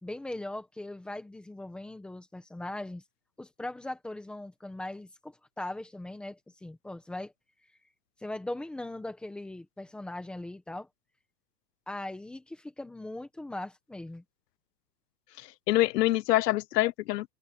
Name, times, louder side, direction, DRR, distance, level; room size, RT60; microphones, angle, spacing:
voice 1, 0.0-3.0 3.4-7.3 8.2-10.9 11.9-14.2, left 1 dB, ahead, 1.1 m, -39 dB
voice 2, 15.4-17.3, left 16 dB, 70° left, 0.6 m, -26 dB
supercardioid pair, 175°, 50 cm